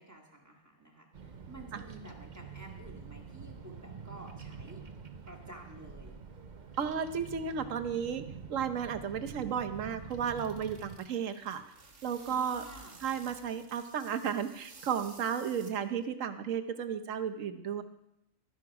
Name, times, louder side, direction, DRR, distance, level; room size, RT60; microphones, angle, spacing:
voice 1, 0.0-4.8 5.3-6.2 12.3-13.0, right 1 dB, 15° right, 0 dB, 2.0 m, -51 dB
Bird vocalization bird call bird song, 1.1-11.0, right 6 dB, 40° right, 0.8 m, -47 dB
voice 2, 6.8-8.2 8.5-11.6 12.0-12.6 13.0-17.8, right 7 dB, 75° right, 9 dB, 1.2 m, -33 dB
sound 1, 9.7-16.1, right 4 dB, 60° right, 1.7 m, -54 dB
12.5 x 11.0 x 4.8 m, 0.85 s
omnidirectional pair, 1.4 m